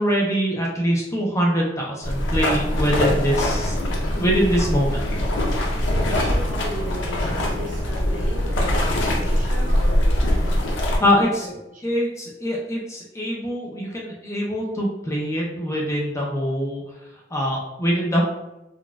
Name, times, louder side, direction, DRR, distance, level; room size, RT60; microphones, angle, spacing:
voice 1, 0.0-3.8 4.2-5.0 11.0-11.5 11.8-16.8 17.3-18.2, equal, 15° left, -3 dB, 0.4 m, -23 dB
sound 1, 2.0-11.0, left 1 dB, 75° left, 0.6 m, -22 dB
voice 2, 2.7-3.3 5.7-10.2 11.1-12.0, right 1 dB, 45° right, -3 dB, 0.8 m, -36 dB
3.9 x 2.3 x 2.3 m, 0.92 s
head